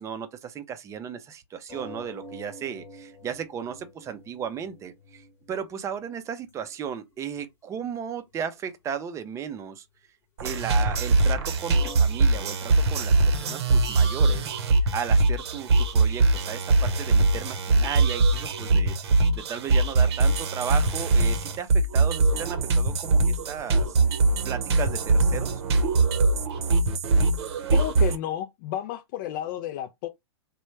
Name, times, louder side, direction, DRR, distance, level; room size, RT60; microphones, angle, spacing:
voice 1, 0.0-9.9 10.4-14.5 14.9-19.0 19.3-25.6, right 7 dB, 20° right, 0.5 m, -35 dB
sound 1, 1.7-5.9 6.2-6.7 7.1-7.4 7.9-8.0 11.7-12.0, equal, 15° left, 0.9 m, -45 dB
sound 2, 10.4-28.2, right 3 dB, 65° right, 0.8 m, -22 dB
voice 2, 27.7-30.1, left 12 dB, 45° left, 0.4 m, -31 dB
3.1 x 2.2 x 3.1 m
hypercardioid pair, 120°, 15 cm